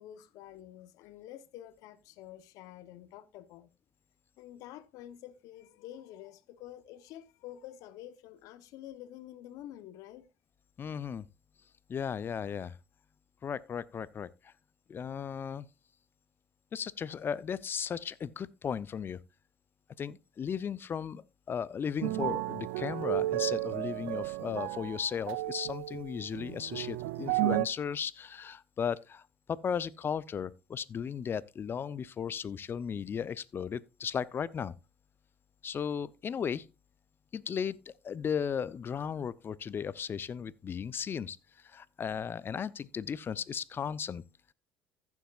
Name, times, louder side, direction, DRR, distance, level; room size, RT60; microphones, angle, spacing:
voice 1, 0.0-3.7 4.4-10.3, left 12 dB, 65° left, 0.9 m, -48 dB
voice 2, 10.8-11.2 11.9-12.8 13.4-14.5 14.9-15.7 16.7-19.2 20.0-29.2 29.5-34.8 35.6-36.7 37.3-37.8 38.0-41.4 41.6-44.2, left 7 dB, 35° left, 0.6 m, -36 dB
sound 1, 22.0-27.7, right 17 dB, 80° right, 0.4 m, -33 dB
15.0 x 7.2 x 2.4 m
hypercardioid pair, 75°, 6 cm